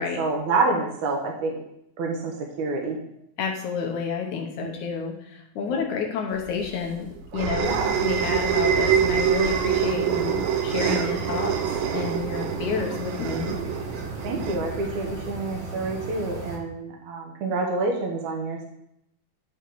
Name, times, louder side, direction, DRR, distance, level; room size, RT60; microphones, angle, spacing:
voice 1, 0.0-1.6 2.0-3.0 4.6-4.7 7.6-8.0 14.2-18.6, right 3 dB, 65° right, 0 dB, 2.2 m, -27 dB
voice 2, 3.4-13.6, left 6 dB, 70° left, 2 dB, 2.0 m, -30 dB
sound 1, 6.5-15.3, right 9 dB, 80° right, 2.1 m, -26 dB
sound 2, 7.6-16.6, right 2 dB, 40° right, 1.6 m, -36 dB
11.5 x 4.3 x 4.6 m, 0.76 s
omnidirectional pair, 4.4 m